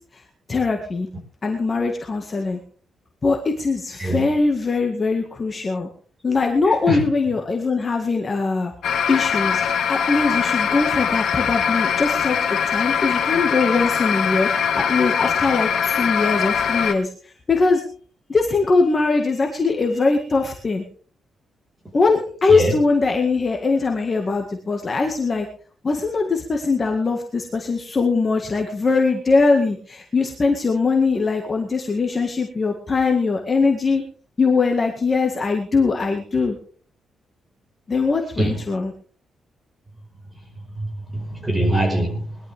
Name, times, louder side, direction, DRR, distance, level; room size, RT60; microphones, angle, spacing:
voice 1, 0.5-1.1 1.4-2.6 3.2-5.9 6.2-8.7 9.1-9.6 9.9-14.5 14.7-17.1 17.5-17.8 18.3-20.9 21.9-25.5 25.8-34.0 34.4-36.6 37.9-38.9, left 4 dB, 25° left, 1.9 m, -21 dB
voice 2, 4.0-4.4 6.9-7.0 22.5-22.8 38.4-38.6 40.8-42.4, right 1 dB, 10° right, 5.3 m, -23 dB
sound 1, 8.8-16.9, left 7 dB, 85° left, 1.8 m, -22 dB
21.0 x 12.0 x 3.6 m
wide cardioid pair, 150°, 0 cm